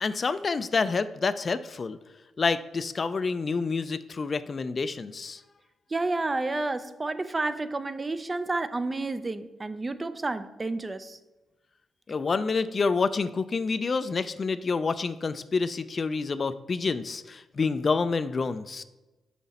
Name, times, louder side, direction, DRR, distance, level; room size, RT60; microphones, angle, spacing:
voice 1, 0.0-2.0 2.4-5.4 12.1-18.8, left 4 dB, 45° left, 0.3 m, -28 dB
voice 2, 5.9-11.2, right 2 dB, 30° right, 0.4 m, -30 dB
5.7 x 5.0 x 4.1 m
supercardioid pair, 55°, 0 cm